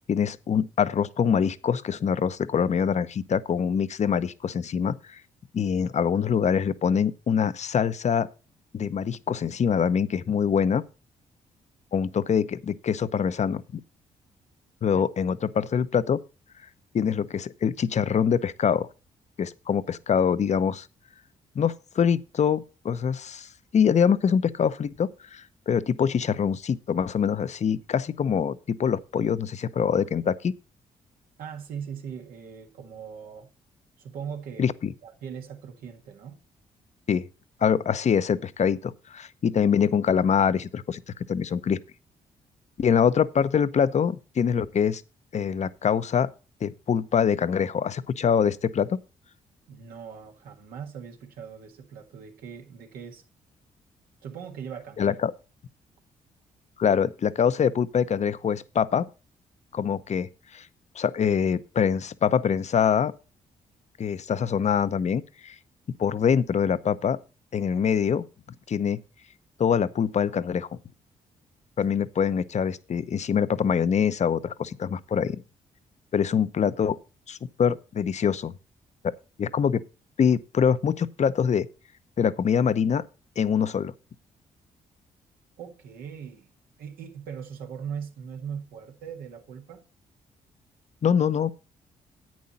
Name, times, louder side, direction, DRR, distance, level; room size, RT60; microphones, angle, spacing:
voice 1, 0.1-5.2 5.5-8.3 8.7-10.8 11.9-13.8 14.8-16.2 16.9-18.9 19.4-20.9 21.5-30.5 34.6-34.9 37.1-37.3 37.6-41.8 42.8-45.0 45.3-46.3 46.6-49.0 55.0-55.3 56.8-59.1 59.7-60.7 61.0-63.1 64.0-65.6 66.0-67.2 67.5-68.2 68.7-69.0 69.6-70.7 71.8-75.4 76.1-77.0 77.3-78.5 79.0-79.1 79.4-79.8 80.2-81.7 82.2-83.0 83.4-83.9 91.0-91.5, left 7 dB, 50° left, 0.8 m, -24 dB
voice 2, 31.4-33.5 34.0-34.7 35.0-36.4 49.7-53.2 54.2-55.2 85.6-86.5 86.8-89.8, right 7 dB, 80° right, 1.7 m, -40 dB
10.5 x 8.5 x 4.2 m
supercardioid pair, 55°, 15 cm